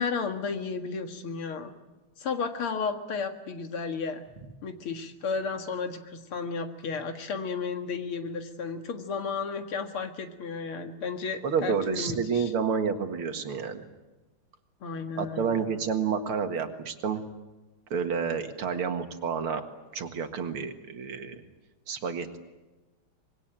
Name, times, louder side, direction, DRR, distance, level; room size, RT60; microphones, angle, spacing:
voice 1, 0.0-1.7 2.2-4.2 4.6-12.5 14.8-15.6, left 5 dB, 80° left, 6 dB, 2.7 m, -33 dB
voice 2, 11.4-13.8 15.2-17.2 17.9-19.6 19.9-21.4 21.9-22.4, right 6 dB, 80° right, 7 dB, 2.6 m, -29 dB
25.0 x 21.5 x 9.0 m, 1.1 s
omnidirectional pair, 2.3 m